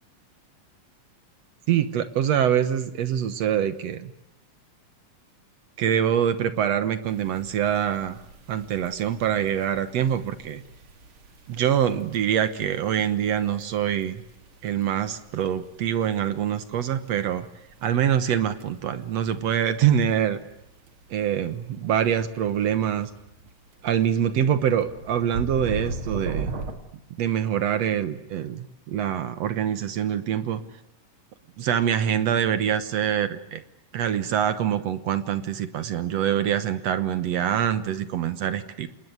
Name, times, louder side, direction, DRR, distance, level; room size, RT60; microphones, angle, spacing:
voice 1, 1.7-4.1 5.8-8.2 8.5-10.6 11.5-14.2 14.6-17.5 17.8-20.4 21.1-23.1 23.8-26.5 27.2-30.6 31.6-33.6 33.9-38.9, right 9 dB, 60° right, 13 dB, 1.9 m, -25 dB
sound 1, 7.1-26.8, right 3 dB, 45° right, 2.7 m, -41 dB
27.5 x 20.5 x 9.4 m, 0.84 s
omnidirectional pair, 3.9 m